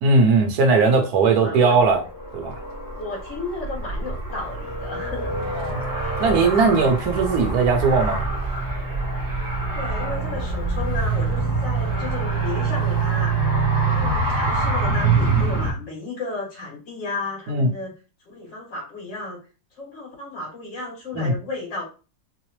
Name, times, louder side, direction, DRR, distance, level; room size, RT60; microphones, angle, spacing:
voice 1, 0.0-2.0 2.3-2.6 5.5-5.8 6.2-8.3 17.5-17.7 21.1-21.3, right 4 dB, 60° right, 1.3 m, -19 dB
voice 2, 1.4-1.7 3.0-5.3 6.4-6.6 9.7-13.3 13.8-17.9 18.3-19.4 19.8-21.8, left 3 dB, 75° left, 2.8 m, -33 dB
Car, 1.7-15.7, right 3 dB, 15° right, 0.7 m, -25 dB
4.7 x 2.0 x 3.0 m
omnidirectional pair, 2.0 m